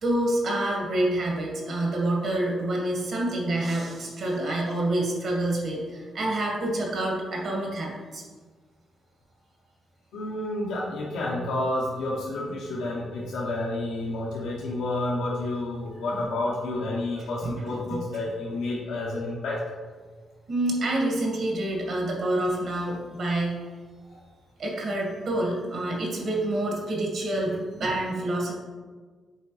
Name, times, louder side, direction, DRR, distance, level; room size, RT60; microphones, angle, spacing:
voice 1, 0.0-8.2 17.4-18.0 20.5-23.6 24.6-28.5, right 1 dB, 65° right, -2 dB, 1.9 m, -27 dB
voice 2, 10.1-19.6 24.1-24.2, left 2 dB, 90° left, -5 dB, 1.0 m, -30 dB
8.0 x 4.4 x 3.2 m, 1.5 s
cardioid pair, 80°, 0 cm